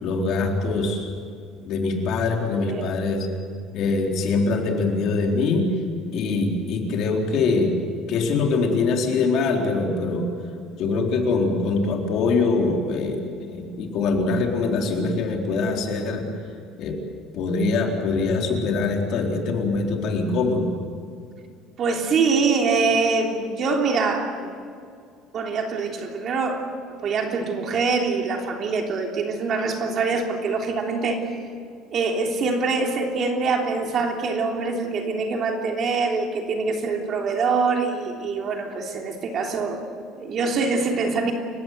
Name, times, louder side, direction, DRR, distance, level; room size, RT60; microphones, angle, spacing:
voice 1, 0.0-1.1 1.6-3.3 3.7-5.7 6.1-7.7 8.1-10.3 10.8-16.3 16.8-16.9 17.3-20.7, left 3 dB, 50° left, 2 dB, 4.1 m, -23 dB
voice 2, 2.6-2.9 21.8-24.5 25.3-26.6 27.0-31.3 31.9-39.8 40.2-41.3, right 4 dB, 40° right, 3 dB, 3.2 m, -24 dB
29.5 x 16.5 x 9.4 m, 2.3 s
cardioid pair, 160°, 0 cm